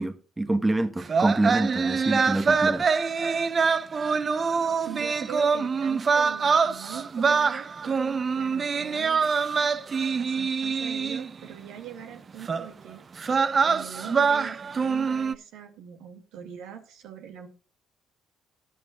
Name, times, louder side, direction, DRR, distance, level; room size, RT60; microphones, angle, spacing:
voice 1, 0.0-2.9, right 2 dB, 15° right, 1.3 m, -26 dB
sound 1, 1.0-11.4 12.5-12.7 13.2-15.3, right 5 dB, 40° right, 0.7 m, -25 dB
voice 2, 4.9-9.2 10.2-13.2 13.6-17.5, right 9 dB, 75° right, 2.5 m, -42 dB
18.0 x 10.5 x 2.4 m
supercardioid pair, 70°, 0 cm